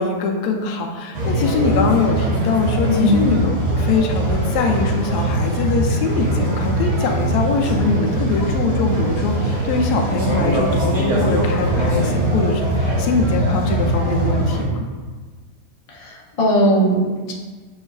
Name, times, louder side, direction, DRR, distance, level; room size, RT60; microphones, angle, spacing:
voice 1, 0.0-14.9, left 4 dB, 90° left, 3 dB, 1.1 m, -22 dB
sound 1, 1.1-14.6, right 1 dB, 75° right, 1.4 m, -21 dB
voice 2, 2.9-3.2 16.0-17.3, equal, 60° left, -3 dB, 0.3 m, -18 dB
6.9 x 2.3 x 2.2 m, 1.4 s
omnidirectional pair, 1.7 m